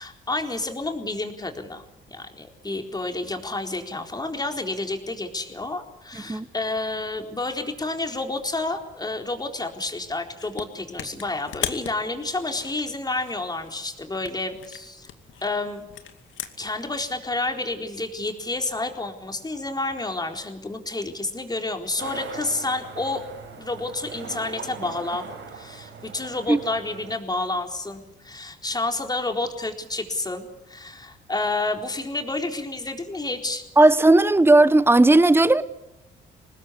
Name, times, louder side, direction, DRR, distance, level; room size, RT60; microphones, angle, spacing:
voice 1, 0.0-15.1 15.4-15.8 16.6-23.2 23.6-25.3 25.5-33.7, left 2 dB, 20° left, 4.1 m, -30 dB
sound 1, 10.4-10.7 11.0-13.8 14.2-16.8, left 10 dB, 75° left, 2.5 m, -37 dB
sound 2, 22.0-27.2, right 5 dB, 70° right, 6.1 m, -40 dB
voice 2, 33.8-35.6, right 2 dB, 10° right, 1.2 m, -15 dB
25.0 x 20.0 x 8.4 m
cardioid pair, 90°, 20 cm